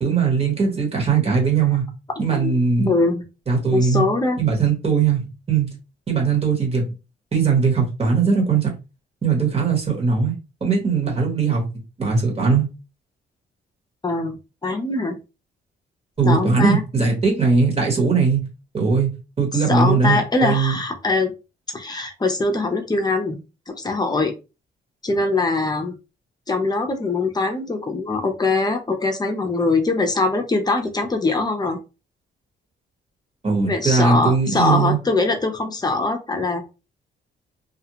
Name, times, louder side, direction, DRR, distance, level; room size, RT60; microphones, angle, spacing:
voice 1, 0.0-1.8 2.2-2.9 3.5-4.0 4.4-5.7 6.1-6.8 7.3-8.7 9.2-10.3 10.6-11.6 12.0-12.7 16.2-18.4 18.7-19.1 19.4-20.8 33.4-35.0, right 5 dB, 30° right, 1.2 m, -19 dB
voice 2, 2.8-3.2 3.7-4.4 14.0-14.4 14.6-15.1 16.2-16.8 19.7-21.3 21.7-23.4 23.8-24.3 25.0-25.9 26.5-31.8 33.7-36.6, left 3 dB, 20° left, 0.7 m, -22 dB
2.4 x 2.3 x 3.0 m
cardioid pair, 90°, 20 cm